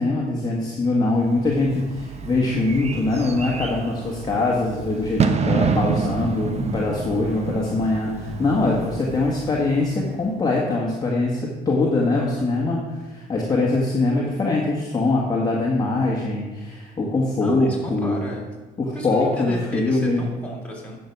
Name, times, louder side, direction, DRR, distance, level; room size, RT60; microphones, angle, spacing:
voice 1, 0.0-18.1 18.8-20.2, left 2 dB, 25° left, -3 dB, 1.7 m, -23 dB
Bird / Fireworks, 1.2-10.4, right 6 dB, 40° right, 0.9 m, -28 dB
voice 2, 17.4-18.4 18.9-21.0, left 1 dB, 5° left, -3 dB, 3.1 m, -33 dB
10.0 x 6.8 x 6.0 m, 1.2 s
cardioid pair, 110°, 17 cm